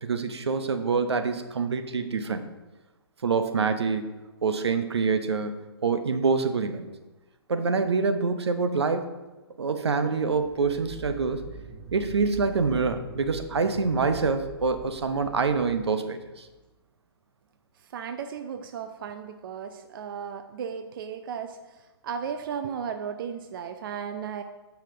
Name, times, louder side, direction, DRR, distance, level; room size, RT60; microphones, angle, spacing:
voice 1, 0.0-2.5 3.2-4.1 4.4-6.9 7.5-9.1 9.6-11.4 11.9-16.5, right 4 dB, 80° right, 8 dB, 0.9 m, -26 dB
sound 1, 10.4-16.6, right 6 dB, 35° right, 1.1 m, -43 dB
voice 2, 17.9-24.4, right 7 dB, 55° right, 8 dB, 0.5 m, -35 dB
8.8 x 5.7 x 3.8 m, 1.1 s
hypercardioid pair, 130°, 14 cm